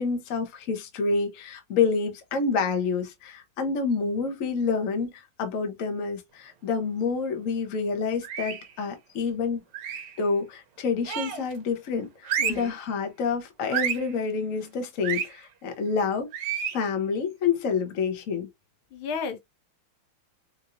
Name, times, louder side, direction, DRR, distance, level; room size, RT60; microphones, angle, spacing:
voice 1, 0.0-9.6 10.2-16.3 16.7-18.5, left 5 dB, 50° left, 1.1 m, -28 dB
sound 1, 8.2-8.7 9.7-10.2 11.0-11.5 12.2-12.7 13.7-14.1 15.0-15.3 16.3-16.8, right 8 dB, 90° right, 1.7 m, -30 dB
voice 2, 12.4-12.7 18.9-19.4, left 5 dB, 80° left, 1.7 m, -32 dB
4.8 x 2.7 x 2.5 m
omnidirectional pair, 2.3 m